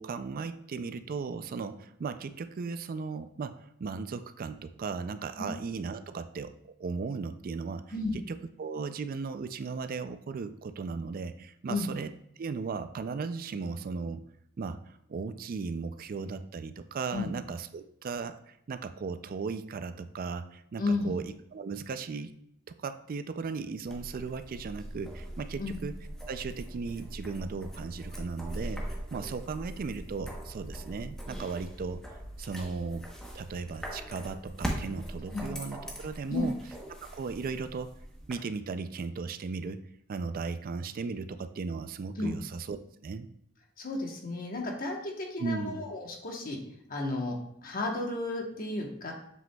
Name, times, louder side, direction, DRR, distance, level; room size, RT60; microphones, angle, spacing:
voice 1, 0.0-7.8 8.1-12.1 12.4-14.2 14.6-22.3 22.8-26.0 26.3-28.8 29.1-32.0 32.4-33.1 33.3-36.6 37.0-37.9 38.3-39.8 40.1-42.8 43.0-43.3 45.4-45.8, right 4 dB, 45° right, 11 dB, 0.3 m, -36 dB
voice 2, 20.8-21.1 25.6-25.8 35.3-35.5 36.3-36.5 42.2-42.4 43.8-46.6 46.9-49.1, left 2 dB, 45° left, 1 dB, 1.1 m, -33 dB
sound 1, 23.9-38.4, equal, 5° left, 0.9 m, -41 dB
7.5 x 6.1 x 2.3 m, 0.72 s
head